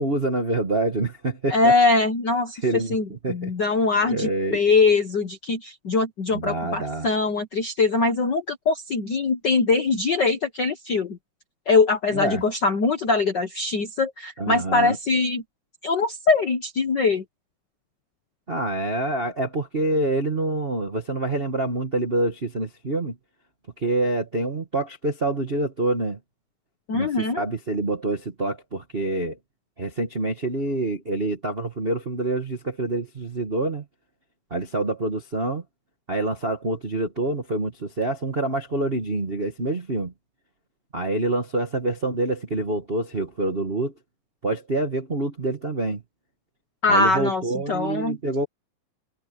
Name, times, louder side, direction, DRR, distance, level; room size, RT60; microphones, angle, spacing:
voice 1, 0.0-1.7 2.6-3.5 4.0-4.6 6.3-7.1 12.1-12.4 14.4-15.0 18.5-23.2 23.8-26.2 26.9-29.4 29.8-33.8 34.5-35.6 36.1-40.1 40.9-43.9 44.4-46.0 46.9-48.4, right 2 dB, 60° right, 0.6 m, -26 dB
voice 2, 1.5-11.2 11.7-15.4 15.8-17.2 26.9-27.4 46.8-48.2, left 3 dB, 85° left, 0.9 m, -22 dB
omnidirectional pair, 4.1 m